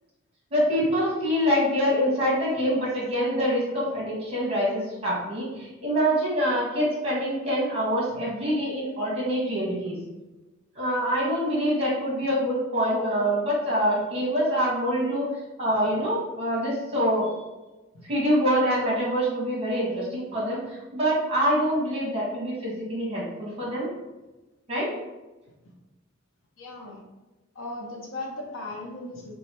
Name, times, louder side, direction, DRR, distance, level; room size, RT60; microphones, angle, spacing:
voice 1, 0.5-10.0 10.7-15.3 15.6-17.3 18.0-23.9 24.7-24.9, equal, 30° right, -6 dB, 1.3 m, -25 dB
voice 2, 26.6-27.0 27.5-29.3, left 2 dB, 75° left, 0 dB, 0.7 m, -37 dB
3.1 x 2.4 x 4.2 m, 1.1 s
head